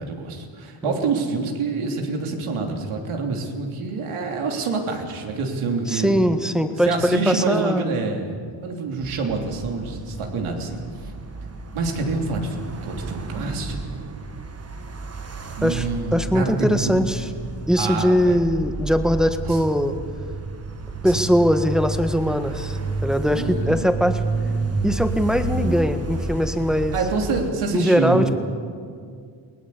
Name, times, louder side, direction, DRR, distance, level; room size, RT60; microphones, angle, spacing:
voice 1, 0.0-6.2 6.8-11.1 11.7-14.1 15.6-17.2 17.8-18.4 19.4-19.6 21.0-21.3 23.3-24.0 26.9-28.3, right 4 dB, 80° right, 2 dB, 3.4 m, -27 dB
voice 2, 5.9-7.9 15.6-15.9 16.1-17.2 17.7-20.0 21.0-24.2 24.8-27.0 27.7-28.3, equal, ahead, 7 dB, 1.6 m, -21 dB
sound 1, 9.0-27.5, right 3 dB, 30° right, 1.5 m, -31 dB
21.0 x 18.5 x 8.5 m, 2.2 s
cardioid pair, 85°, 49 cm